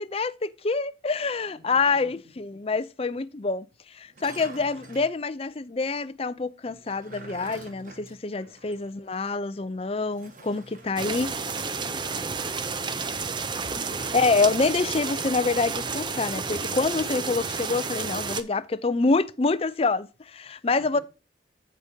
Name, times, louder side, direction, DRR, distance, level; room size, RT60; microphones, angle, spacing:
voice 1, 0.0-3.7 3.9-11.3 14.1-21.0, left 3 dB, 30° left, 0.5 m, -26 dB
voice 2, 1.4-2.1 8.4-8.7 10.8-12.6 12.9-14.1 20.8-21.0, left 1 dB, ahead, 3.2 m, -50 dB
sound 1, 4.1-5.1 6.7-8.9 9.2-9.3 10.1-11.0 13.5-14.5 15.8-16.5, right 2 dB, 45° right, 1.6 m, -47 dB
sound 2, 11.0-18.4, right 5 dB, 25° right, 0.5 m, -31 dB
14.5 x 5.1 x 2.7 m
head